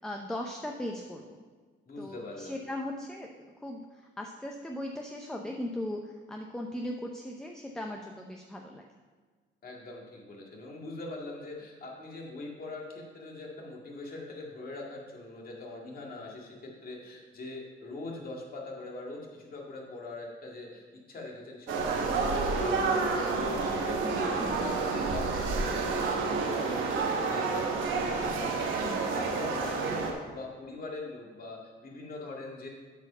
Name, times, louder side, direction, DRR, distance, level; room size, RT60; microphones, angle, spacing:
voice 1, 0.0-1.3 2.0-3.3 3.6-6.0 6.3-8.8 24.0-24.6 28.8-29.1, left 1 dB, 5° left, 2 dB, 0.6 m, -38 dB
voice 2, 1.9-2.6 9.6-32.7, left 2 dB, 45° left, -1 dB, 2.0 m, -42 dB
sound 1, 21.7-30.1, right 4 dB, 80° right, 1.1 m, -29 dB
8.0 x 4.9 x 5.5 m, 1.4 s
cardioid pair, 90°, 20 cm